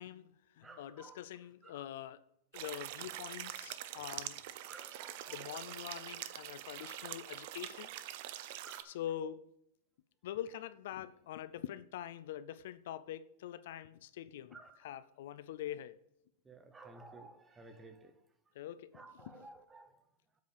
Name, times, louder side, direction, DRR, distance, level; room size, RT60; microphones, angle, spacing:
voice 1, 0.0-2.2 2.5-4.4 5.3-7.9 8.8-9.4 10.2-14.6 14.8-16.0 18.6-19.5, left 11 dB, 60° left, 0.4 m, -44 dB
voice 2, 0.6-1.2 1.6-1.8 4.7-5.5 6.8-7.1 8.6-9.0 14.5-14.8 16.4-18.1 18.9-20.0, right 3 dB, 10° right, 0.8 m, -55 dB
sound 1, 2.5-8.8, right 13 dB, 45° right, 0.6 m, -45 dB
8.0 x 4.9 x 6.7 m
supercardioid pair, 170°, 0 cm